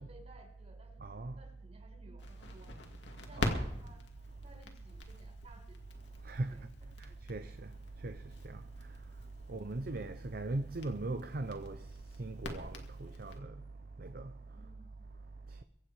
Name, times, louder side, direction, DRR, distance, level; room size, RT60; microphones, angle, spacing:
voice 1, 0.0-1.0 1.4-2.8 3.2-4.0 4.4-5.8 6.5-6.6 9.4-9.5 14.5-14.9, right 1 dB, 35° right, 5.1 m, -58 dB
voice 2, 1.0-1.3 3.3-3.6 6.2-6.5 7.0-7.7 8.0-8.2 8.4-8.6 9.5-11.8 12.2-13.5 14.0-14.3, right 2 dB, 55° right, 0.7 m, -39 dB
Crackle, 2.2-13.4, left 1 dB, 70° left, 2.2 m, -44 dB
23.5 x 9.0 x 4.8 m
head